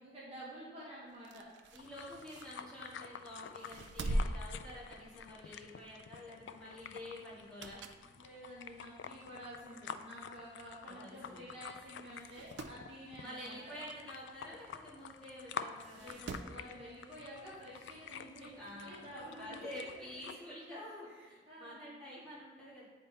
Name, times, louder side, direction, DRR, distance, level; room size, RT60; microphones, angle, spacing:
voice 1, 0.0-1.5 8.2-13.7 15.5-15.7 15.9-19.7 19.9-20.0 21.2-21.7, equal, 35° right, -8 dB, 1.4 m, -50 dB
sound 1, 1.1-3.1 3.5-5.4 5.8-6.0 7.3-8.1 8.6-8.7 9.6-9.7 9.9-10.0 10.2-10.3 11.1-11.3 11.6-11.7 12.1-12.8 14.7-14.8 15.8-16.6 17.9-18.0, right 1 dB, 80° right, 0.4 m, -41 dB
voice 2, 1.7-7.8 10.8-11.4 13.2-16.2 18.6-19.1 19.3-22.9, left 1 dB, 5° left, -10 dB, 2.0 m, -48 dB
sound 2, 1.8-20.3, left 7 dB, 80° left, 0.3 m, -49 dB
8.3 x 3.6 x 4.1 m, 1.3 s
head